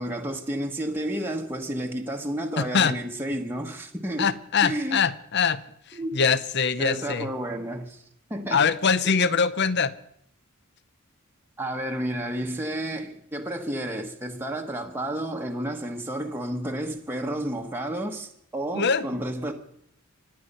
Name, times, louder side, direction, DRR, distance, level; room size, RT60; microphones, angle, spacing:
voice 1, 0.0-4.3 4.6-5.0 5.9-6.2 6.8-8.0 8.3-8.6 9.0-9.2 11.6-19.5, right 1 dB, 10° right, 1.2 m, -31 dB
voice 2, 2.6-3.0 4.2-5.6 5.9-7.3 8.5-9.9 18.7-19.1, left 6 dB, 50° left, 0.7 m, -23 dB
25.5 x 9.7 x 5.5 m
head